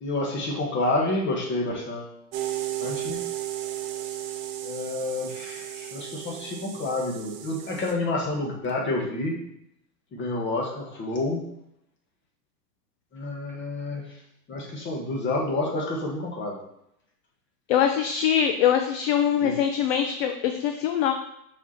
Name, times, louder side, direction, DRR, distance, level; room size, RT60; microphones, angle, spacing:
voice 1, 0.0-2.1 2.8-3.2 4.6-9.4 10.1-11.4 13.1-14.0 14.5-16.6 19.3-19.6, left 2 dB, 25° left, 0 dB, 1.6 m, -29 dB
sound 1, 2.3-7.9, right 13 dB, 55° right, 1.0 m, -34 dB
voice 2, 17.7-21.1, left 9 dB, 40° left, 6 dB, 0.5 m, -23 dB
5.8 x 4.5 x 4.3 m, 0.78 s
hypercardioid pair, 125°, 47 cm